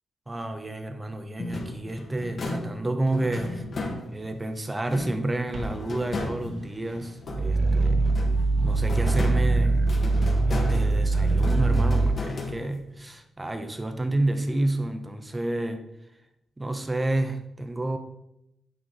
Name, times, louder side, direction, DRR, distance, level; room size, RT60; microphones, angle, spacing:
voice 1, 0.3-3.6 4.1-8.1 8.6-9.8 10.5-15.9 16.6-18.0, right 2 dB, 15° right, 8 dB, 0.7 m, -30 dB
sound 1, 1.4-4.4 4.9-7.7 8.1-13.0, left 2 dB, 45° left, 1.3 m, -35 dB
Walk footsteps, 3.3-4.8 5.1-7.4 7.8-11.8 12.1-12.2, right 2 dB, 75° right, 1.3 m, -47 dB
Growling, 7.3-12.2, right 3 dB, 45° right, 0.4 m, -22 dB
9.0 x 5.5 x 4.0 m, 0.85 s
wide cardioid pair, 130°, 0 cm